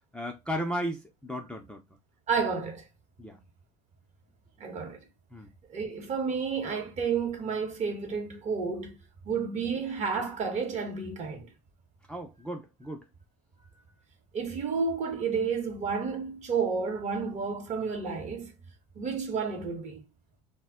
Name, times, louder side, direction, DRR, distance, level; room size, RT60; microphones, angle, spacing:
voice 1, 0.1-1.8 3.2-3.4 5.3-5.5 12.1-13.0, equal, 5° left, 0.4 m, -35 dB
voice 2, 2.3-2.8 4.6-5.0 5.7-9.0 9.2-11.5 14.3-18.5 19.0-20.0, right 5 dB, 40° right, 0.9 m, -31 dB
2.1 x 2.0 x 3.4 m
hypercardioid pair, 85°, 18 cm